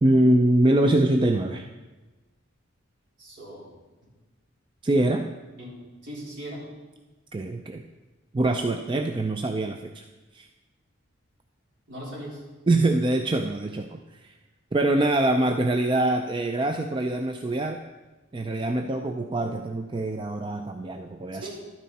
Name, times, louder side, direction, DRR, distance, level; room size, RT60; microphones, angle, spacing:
voice 1, 0.0-1.7 4.8-5.3 7.3-7.8 8.3-10.0 10.3-10.5 12.7-14.3 14.7-17.8 18.3-21.5, right 1 dB, 25° right, 5 dB, 0.4 m, -24 dB
voice 2, 3.2-3.7 5.6-5.7 6.0-6.7 11.9-12.4 21.4-21.5, right 1 dB, 60° right, -6 dB, 4.2 m, -38 dB
12.0 x 9.3 x 4.2 m, 1.2 s
head